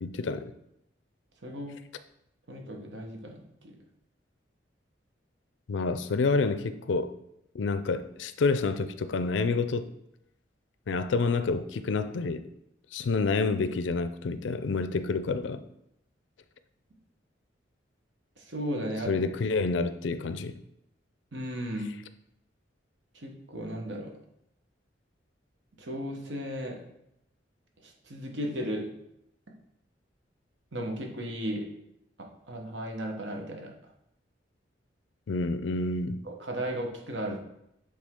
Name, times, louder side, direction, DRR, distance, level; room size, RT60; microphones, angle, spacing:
voice 1, 0.0-0.5 5.7-7.2 7.5-9.9 10.9-12.4 12.9-15.6 19.1-20.5 35.3-36.2, left 4 dB, 85° left, 0.4 m, -28 dB
voice 2, 1.4-1.7 2.5-3.8 18.4-19.1 21.3-21.9 23.1-24.1 25.8-26.8 27.8-28.9 30.7-31.7 32.5-33.7 36.2-37.4, equal, 80° right, 1.1 m, -35 dB
7.6 x 3.6 x 3.6 m
head